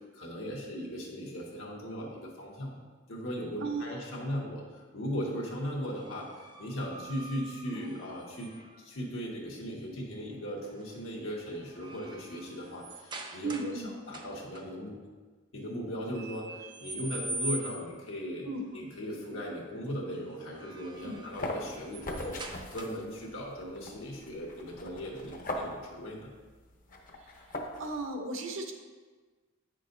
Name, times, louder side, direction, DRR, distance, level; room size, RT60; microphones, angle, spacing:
voice 1, 0.1-2.8 3.1-8.5 8.8-15.0 15.5-18.5 18.7-26.3, equal, 80° left, -3 dB, 1.6 m, -38 dB
voice 2, 3.6-4.0 13.4-13.9 18.4-18.6 21.0-21.2 27.2-27.3 27.8-28.7, right 3 dB, 70° right, 4 dB, 0.8 m, -35 dB
sound 1, 5.9-8.8 10.6-11.0 11.4-13.8 14.1-14.6 16.1-18.0 20.3-23.2, right 2 dB, 25° right, 0.5 m, -43 dB
sound 2, 21.0-28.0, left 1 dB, 45° left, 0.8 m, -41 dB
8.9 x 6.4 x 2.6 m, 1.4 s
head